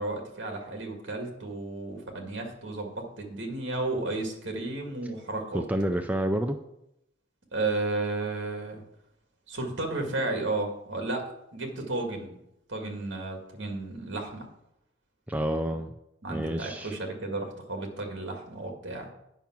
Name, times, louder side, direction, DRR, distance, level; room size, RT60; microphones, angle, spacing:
voice 1, 0.0-5.6 7.5-8.8 9.5-11.2 11.5-12.4 12.7-14.5 16.2-19.1, right 2 dB, 65° right, 2 dB, 2.0 m, -33 dB
voice 2, 5.5-6.6 15.3-15.9 16.3-16.9, right 1 dB, 5° right, 5 dB, 0.3 m, -29 dB
8.9 x 5.7 x 6.0 m, 0.81 s
head